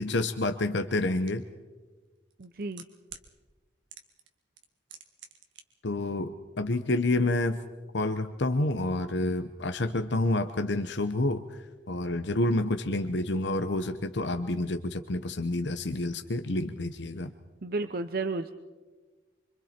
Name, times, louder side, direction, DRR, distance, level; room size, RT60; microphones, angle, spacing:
voice 1, 0.0-1.4 5.8-7.6 7.9-11.6 11.9-17.3, left 2 dB, 70° left, 8 dB, 0.9 m, -28 dB
sound 1, 1.3-1.4 2.3-3.3 3.9-4.3 4.6-5.6 5.9-6.0, right 8 dB, 90° right, 1.8 m, -46 dB
voice 2, 2.4-2.8 17.6-18.5, right 3 dB, 55° right, 9 dB, 0.7 m, -32 dB
25.5 x 25.5 x 4.4 m, 1.3 s
head